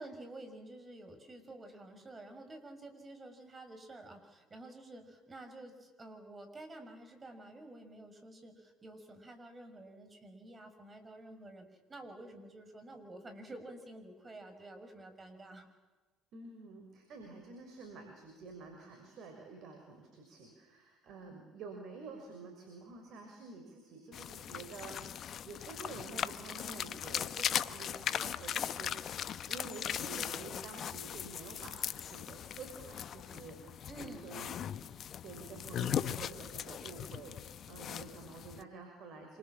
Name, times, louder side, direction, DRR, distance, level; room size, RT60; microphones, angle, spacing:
voice 1, 0.0-15.7 33.9-34.3, right 2 dB, 25° right, 7 dB, 6.6 m, -50 dB
voice 2, 16.3-25.0 25.4-34.9 35.2-39.4, right 4 dB, 60° right, 4 dB, 6.2 m, -49 dB
sound 1, 24.1-38.6, left 9 dB, 50° left, 1.0 m, -39 dB
27.0 x 26.0 x 7.6 m, 1.3 s
hypercardioid pair, 65°, 0 cm